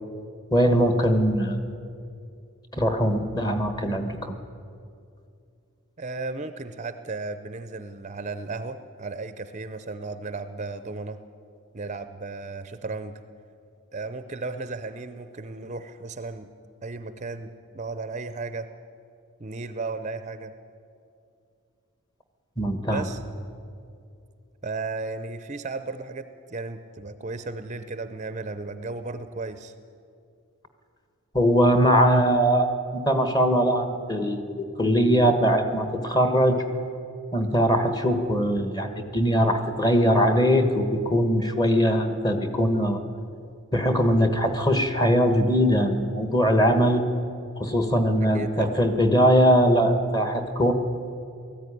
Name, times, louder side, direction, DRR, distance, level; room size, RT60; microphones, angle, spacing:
voice 1, 0.5-1.7 2.7-4.3 22.6-23.0 31.3-36.6 37.3-43.0 43.7-47.0 47.6-50.7, equal, 20° left, 8 dB, 1.3 m, -21 dB
voice 2, 6.0-11.2 11.7-13.2 13.9-16.5 16.8-17.5 17.7-18.7 19.4-20.5 22.9-23.2 24.6-29.7 48.2-48.8, right 3 dB, 30° right, 11 dB, 0.6 m, -34 dB
18.5 x 14.0 x 9.9 m, 2.5 s
head